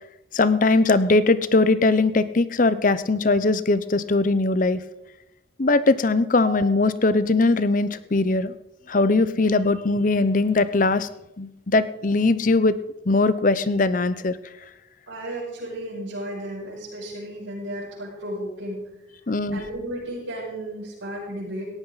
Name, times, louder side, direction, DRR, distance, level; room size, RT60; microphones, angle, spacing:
voice 1, 0.3-4.8 5.6-8.6 8.9-11.1 11.4-12.8 13.1-14.4 19.3-19.6, left 3 dB, 40° left, 14 dB, 0.7 m, -20 dB
voice 2, 15.1-18.8 19.5-21.6, right 1 dB, 85° right, -11 dB, 7.2 m, -33 dB
18.0 x 14.0 x 4.1 m, 0.91 s
head